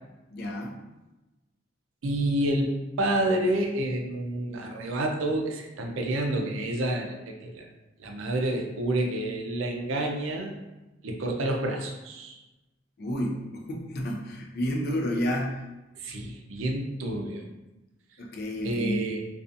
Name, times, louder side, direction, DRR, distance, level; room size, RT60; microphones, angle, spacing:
voice 1, 0.3-0.8 13.0-15.6 18.2-19.0, equal, 55° left, 0 dB, 0.5 m, -30 dB
voice 2, 2.0-7.7 8.0-10.5 11.0-12.4 16.0-17.5 18.6-19.3, right 1 dB, 85° right, 2 dB, 0.4 m, -29 dB
2.5 x 2.3 x 2.5 m, 1.1 s
head